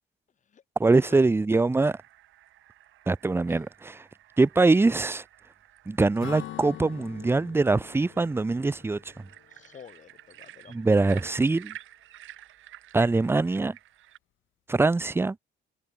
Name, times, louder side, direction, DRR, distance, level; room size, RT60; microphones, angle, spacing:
voice 1, 0.8-2.0 3.1-4.0 4.4-5.2 5.9-9.3 10.7-11.7 12.9-13.8 14.7-15.4, right 3 dB, 10° right, 0.5 m, -23 dB
sound 1, 1.8-14.2, right 14 dB, 80° right, 1.9 m, -51 dB
Acoustic guitar / Strum, 6.2-9.8, left 14 dB, 75° left, 1.3 m, -44 dB
voice 2, 9.5-11.4, left 7 dB, 40° left, 0.8 m, -50 dB
cardioid pair, 90°, 20 cm